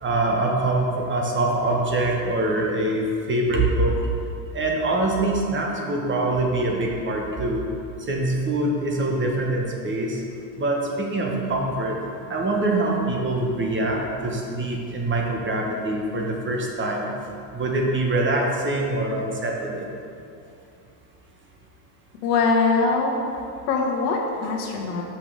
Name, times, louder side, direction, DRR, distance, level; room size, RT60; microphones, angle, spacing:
voice 1, 0.0-4.0 4.5-7.7 8.1-10.2 10.6-12.0 12.3-17.1 17.5-19.9, right 2 dB, 25° right, -1 dB, 1.2 m, -24 dB
voice 2, 22.2-23.1 23.7-25.0, left 4 dB, 70° left, 0 dB, 1.5 m, -22 dB
6.8 x 5.7 x 5.0 m, 2.6 s
supercardioid pair, 110°, 49 cm